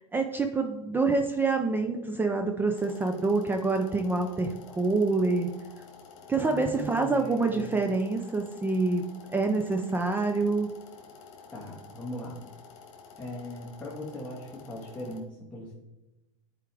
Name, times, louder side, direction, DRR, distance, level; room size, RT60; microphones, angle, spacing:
voice 1, 0.0-5.5 6.3-9.0 9.3-10.7, right 3 dB, 10° right, 4 dB, 0.5 m, -26 dB
sound 1, 2.7-15.2, left 5 dB, 50° left, 1.8 m, -50 dB
voice 2, 6.3-7.8 11.5-12.4 13.2-15.7, left 1 dB, 5° left, -6 dB, 1.5 m, -39 dB
10.5 x 4.8 x 3.4 m, 1.0 s
hypercardioid pair, 120°, 17 cm